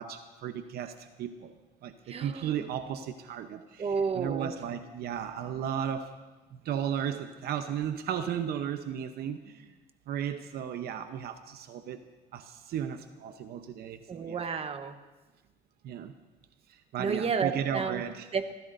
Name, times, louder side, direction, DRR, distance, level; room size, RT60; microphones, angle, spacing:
voice 1, 0.0-1.5 1.8-6.1 6.5-9.7 10.1-12.0 12.3-14.4 15.8-16.1 16.7-18.3, right 9 dB, 70° right, 8 dB, 0.8 m, -35 dB
voice 2, 2.1-2.5 3.8-4.5 14.1-15.0 17.0-18.0 18.3-18.5, right 5 dB, 35° right, 8 dB, 1.1 m, -31 dB
26.0 x 15.5 x 2.6 m, 1.2 s
cardioid pair, 110°, 17 cm